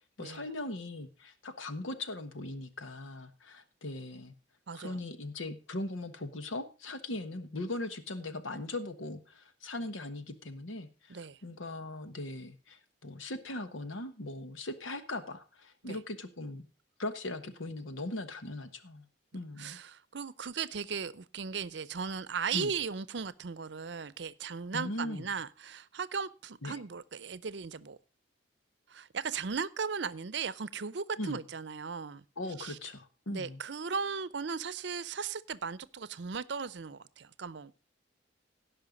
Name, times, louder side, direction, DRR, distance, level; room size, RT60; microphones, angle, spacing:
voice 1, 0.2-4.3 4.7-16.6 17.0-19.1 19.3-19.8 22.5-22.7 24.7-25.3 26.6-26.8 31.2-31.4 32.4-33.6, left 2 dB, 90° left, 1.3 m, -39 dB
voice 2, 4.7-5.0 11.1-11.4 15.8-16.0 19.6-28.0 28.9-32.2 32.6-32.8 33.3-37.7, right 5 dB, 65° right, 0.6 m, -37 dB
17.0 x 5.7 x 5.2 m
head